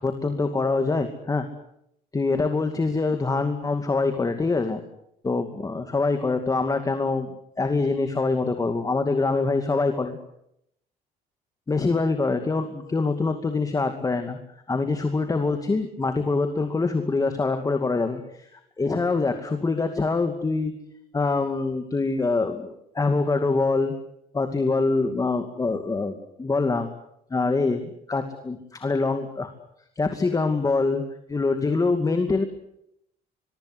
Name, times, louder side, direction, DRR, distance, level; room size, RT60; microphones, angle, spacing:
voice 1, 0.0-1.5 2.1-4.8 5.2-10.2 11.7-14.4 14.7-20.8 21.1-23.9 24.3-26.9 27.3-29.5 30.0-31.0 31.3-32.4, left 3 dB, 20° left, 7 dB, 2.4 m, -24 dB
23.0 x 23.0 x 8.1 m, 0.77 s
cardioid pair, 110°, 17 cm